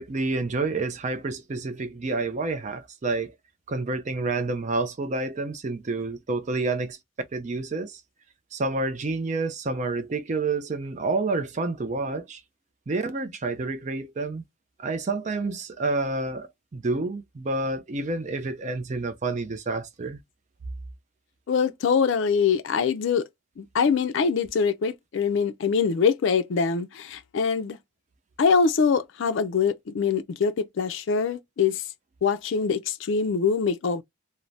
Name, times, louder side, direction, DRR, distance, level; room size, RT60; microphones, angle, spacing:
voice 1, 0.0-3.3 3.7-8.0 8.5-12.4 12.9-14.4 14.8-20.2, right 3 dB, 35° right, 0.4 m, -29 dB
voice 2, 21.5-23.3 23.6-27.8 28.4-31.8 32.2-34.0, left 5 dB, 60° left, 0.4 m, -24 dB
2.6 x 2.1 x 3.2 m
head